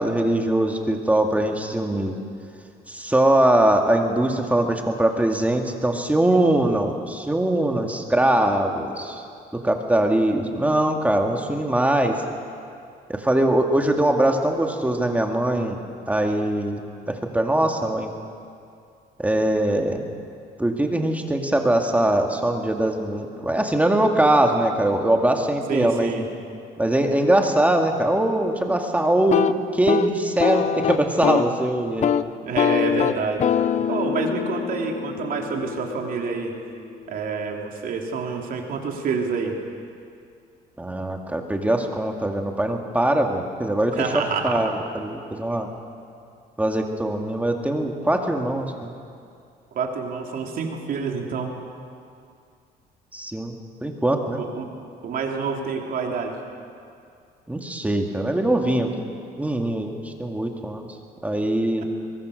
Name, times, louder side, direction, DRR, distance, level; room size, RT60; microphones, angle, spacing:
voice 1, 0.0-2.2 2.9-9.2 9.5-12.2 13.1-15.8 16.1-16.8 17.1-18.1 19.2-20.0 20.6-26.1 26.8-29.4 29.7-32.1 40.8-45.7 46.6-48.9 53.1-54.4 57.5-59.1 59.4-60.9 61.2-61.8, right 1 dB, 10° right, 3 dB, 2.2 m, -22 dB
voice 2, 25.7-26.3 32.4-33.5 33.9-36.5 37.1-39.6 43.9-44.8 49.7-51.5 54.3-54.7 55.0-56.4, right 5 dB, 55° right, 1 dB, 3.3 m, -27 dB
sound 1, 29.2-31.6 31.9-32.2 32.6-36.4, left 8 dB, 45° left, 0.7 m, -24 dB
22.5 x 21.5 x 6.6 m, 2.4 s
cardioid pair, 110°, 17 cm